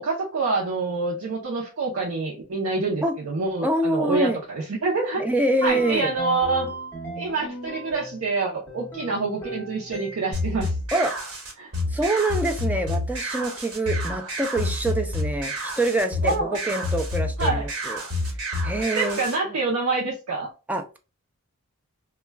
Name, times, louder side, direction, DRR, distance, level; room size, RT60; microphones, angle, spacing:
voice 1, 0.0-5.2 5.6-6.7 7.1-10.7 11.6-11.7 16.2-16.6 17.4-17.6 18.9-20.5, right 3 dB, 70° right, -3 dB, 0.6 m, -26 dB
voice 2, 3.6-4.4 5.2-6.1 10.9-11.2 11.9-18.0 18.6-19.2 20.7-21.0, right 1 dB, 5° right, 4 dB, 0.4 m, -25 dB
sound 1, 5.7-8.3 8.7-10.5, right 1 dB, 10° left, 0.9 m, -38 dB
sound 2, 10.3-19.4, left 1 dB, 85° right, 1.1 m, -29 dB
2.2 x 2.2 x 3.2 m, 0.31 s
head